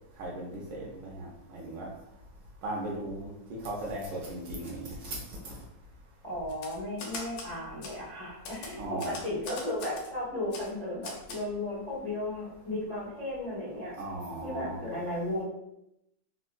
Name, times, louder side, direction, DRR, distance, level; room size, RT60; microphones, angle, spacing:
voice 1, 0.2-1.9 2.6-5.6 8.7-9.2 14.0-14.9, right 1 dB, 70° right, -3 dB, 1.1 m, -37 dB
voice 2, 6.2-13.9 14.4-15.4, left 1 dB, 65° left, -8 dB, 0.3 m, -35 dB
Typewriter, 6.5-7.5 7.8-8.0 8.4-10.1 10.5-10.7 11.0-11.4, left 4 dB, 90° left, 1.6 m, -41 dB
3.7 x 2.1 x 2.4 m, 0.84 s
omnidirectional pair, 2.4 m